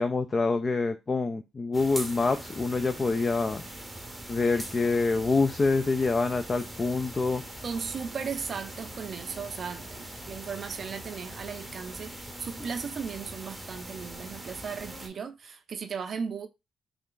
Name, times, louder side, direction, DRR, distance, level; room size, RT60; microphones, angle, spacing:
voice 1, 0.0-3.6 4.3-7.4, left 3 dB, 30° left, 0.3 m, -26 dB
sound 1, 1.7-15.1, right 1 dB, 10° right, 0.7 m, -42 dB
voice 2, 7.6-16.5, right 6 dB, 50° right, 0.5 m, -36 dB
3.2 x 2.3 x 3.8 m
cardioid pair, 90°, 0 cm